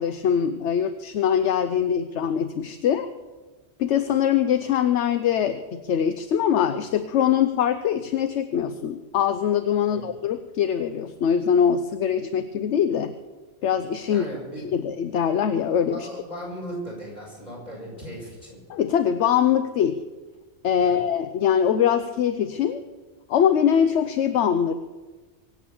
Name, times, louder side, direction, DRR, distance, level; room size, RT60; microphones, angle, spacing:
voice 1, 0.0-3.1 3.8-13.1 13.6-14.3 14.6-16.1 18.7-20.0 20.6-22.8 23.3-24.7, left 8 dB, 75° left, 10 dB, 1.0 m, -23 dB
voice 2, 14.1-14.6 15.9-18.6 20.8-21.0, equal, 35° left, -3 dB, 7.1 m, -37 dB
24.0 x 8.3 x 7.0 m, 1.3 s
omnidirectional pair, 1.2 m